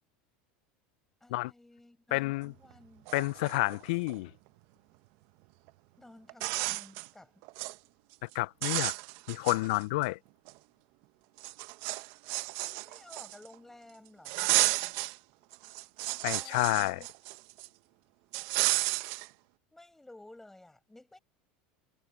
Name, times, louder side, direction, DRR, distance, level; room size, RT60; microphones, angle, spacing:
voice 1, 1.2-3.1 6.0-7.3 12.6-14.5 16.3-17.1 19.7-21.2, left 2 dB, 10° left, 5.2 m, -54 dB
voice 2, 2.1-2.5 3.1-4.3 8.3-8.9 9.3-10.2 16.2-17.0, left 21 dB, 75° left, 0.4 m, -29 dB
sound 1, 2.7-2.8 3.1-4.2 5.7-5.8 6.3-7.1 7.4-7.7 8.1-8.3 8.6-10.0 10.5-10.6 11.4-13.5 14.2-15.2 15.5-17.7 18.3-19.3, right 24 dB, 65° right, 0.8 m, -32 dB
hypercardioid pair, 95°, 5 cm